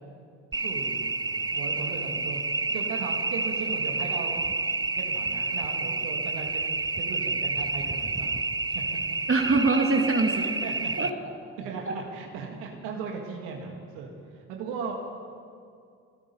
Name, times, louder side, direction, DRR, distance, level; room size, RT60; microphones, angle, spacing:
sound 1, 0.5-11.1, right 3 dB, 10° right, 0.5 m, -29 dB
voice 1, 0.5-1.1 1.5-2.4 2.7-4.4 4.9-6.7 7.0-8.4 8.7-8.8 10.3-11.1 11.6-14.9, right 5 dB, 80° right, 1 dB, 1.8 m, -37 dB
voice 2, 9.3-10.5 11.0-11.3 11.9-12.0, right 3 dB, 35° right, 1 dB, 2.0 m, -24 dB
27.0 x 9.3 x 5.5 m, 2.3 s
hypercardioid pair, 45°, 38 cm